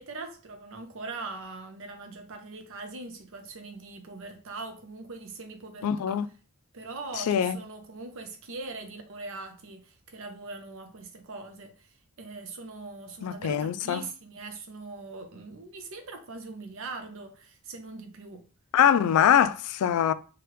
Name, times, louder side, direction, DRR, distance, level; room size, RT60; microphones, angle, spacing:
voice 1, 0.0-6.3 6.7-18.5, right 3 dB, 65° right, 0.6 m, -41 dB
voice 2, 5.8-6.3 7.3-7.6 13.2-14.0 18.7-20.1, left 9 dB, 85° left, 0.3 m, -23 dB
3.3 x 2.3 x 3.0 m
head